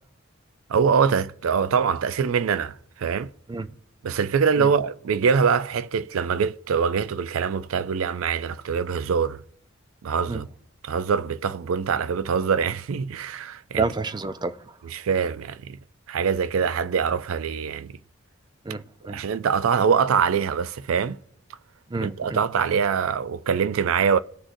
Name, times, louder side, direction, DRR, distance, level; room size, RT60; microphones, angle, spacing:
voice 1, 0.7-3.3 4.0-9.4 10.0-10.5 10.8-13.8 14.9-15.8 16.1-17.9 19.1-21.2 21.9-24.2, right 6 dB, 85° right, 0.4 m, -24 dB
voice 2, 13.7-14.8 18.6-19.2 21.9-22.4, right 4 dB, 20° right, 0.4 m, -29 dB
18.0 x 6.2 x 2.6 m
head